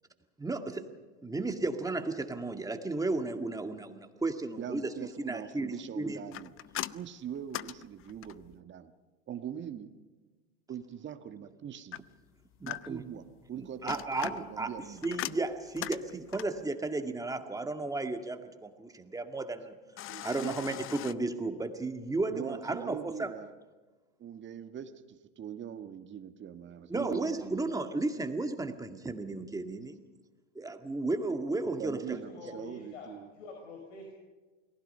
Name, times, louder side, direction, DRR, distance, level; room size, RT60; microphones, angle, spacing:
voice 1, 0.4-0.9 1.2-4.9 5.2-6.2 12.6-13.0 13.6-14.7 15.0-19.7 20.2-23.3 26.9-30.0 30.6-32.2, right 2 dB, 10° right, 6 dB, 2.0 m, -34 dB
voice 2, 4.6-6.5 6.9-8.9 9.3-9.9 10.7-12.0 12.6-15.1 20.1-20.6 22.3-23.5 24.2-27.6 31.6-33.3, right 9 dB, 30° right, 7 dB, 1.7 m, -42 dB
sound 1, 6.3-8.6 11.9-13.2 13.7-16.7 20.0-21.1, left 14 dB, 35° left, 0.6 m, -41 dB
voice 3, 32.1-34.1, left 3 dB, 80° left, 1 dB, 5.6 m, -47 dB
29.0 x 19.5 x 5.6 m, 1.3 s
hypercardioid pair, 100°, 37 cm